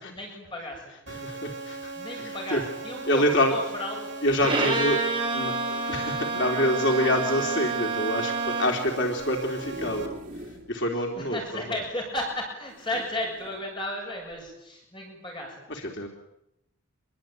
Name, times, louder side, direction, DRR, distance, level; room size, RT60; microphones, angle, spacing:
voice 1, 0.1-0.9 2.0-3.2 3.5-4.1 4.6-4.8 11.2-15.6, left 1 dB, 25° left, 0 dB, 7.5 m, -34 dB
voice 2, 1.1-2.6 3.1-3.5 4.2-5.0 5.3-11.8 15.7-16.1, left 1 dB, 65° left, 2 dB, 3.5 m, -27 dB
sound 1, 1.1-10.1, right 3 dB, 60° right, 5.0 m, -38 dB
Bowed string instrument, 4.4-8.9, right 4 dB, 25° right, 4.6 m, -29 dB
sound 2, 9.4-10.7 11.2-11.3 11.5-11.6 12.7-13.6 14.3-14.5, right 1 dB, 40° right, 4.5 m, -42 dB
27.5 x 22.5 x 9.2 m, 0.86 s
head